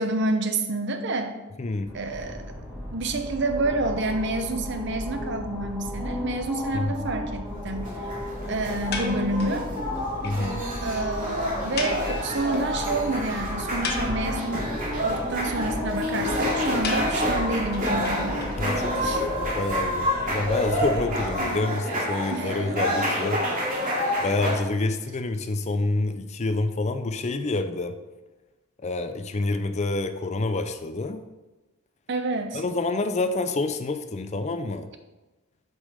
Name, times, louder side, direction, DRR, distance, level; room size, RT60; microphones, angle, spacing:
voice 1, 0.0-1.3 1.9-2.4 2.9-8.0 8.5-9.7 10.8-14.7 15.0-18.4 19.0-19.2 21.4-21.6 22.3-22.6 32.1-32.6, right 2 dB, 55° right, 7 dB, 0.8 m, -28 dB
voice 2, 1.6-1.9 6.7-7.1 10.2-10.6 18.6-23.6 24.2-28.0 28.8-31.2 32.5-34.9, left 2 dB, 30° left, 9 dB, 0.5 m, -28 dB
sound 1, 1.9-21.4, left 1 dB, 10° right, 2.2 m, -34 dB
sound 2, 7.5-24.5, equal, 40° right, 2.4 m, -29 dB
sound 3, 8.9-9.6 10.0-10.1 10.2-10.4 10.7-10.8 10.9-11.1 11.8-12.8 13.1-13.2 13.6-14.6 16.8-18.8, left 4 dB, 50° left, 1.2 m, -34 dB
8.4 x 5.4 x 5.0 m, 1.1 s
head